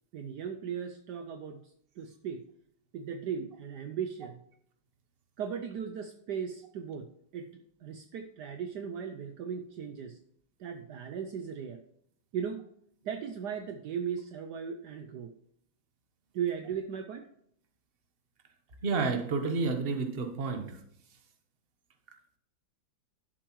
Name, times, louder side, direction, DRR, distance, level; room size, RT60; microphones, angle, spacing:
voice 1, 0.1-2.5 2.9-4.4 5.4-10.2 10.6-11.8 12.3-12.6 13.0-15.3 16.3-17.3, right 7 dB, 70° right, 8 dB, 1.2 m, -37 dB
voice 2, 18.8-20.8, right 4 dB, 35° right, 5 dB, 1.2 m, -30 dB
11.5 x 7.7 x 3.1 m, 0.71 s
omnidirectional pair, 2.0 m